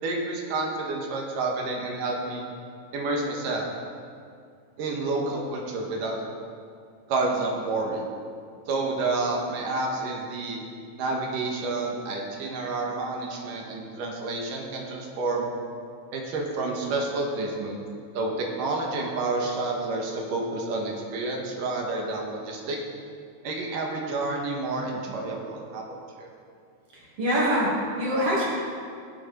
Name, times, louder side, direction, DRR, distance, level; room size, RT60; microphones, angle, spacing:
voice 1, 0.0-2.5 2.9-3.7 4.8-6.2 7.1-8.1 8.7-10.6 11.0-15.5 16.1-17.8 18.1-22.8 23.4-26.3, right 3 dB, 80° right, 0 dB, 3.1 m, -29 dB
voice 2, 26.9-28.4, equal, 45° right, -5 dB, 3.5 m, -25 dB
18.0 x 7.7 x 4.5 m, 2.2 s
omnidirectional pair, 3.8 m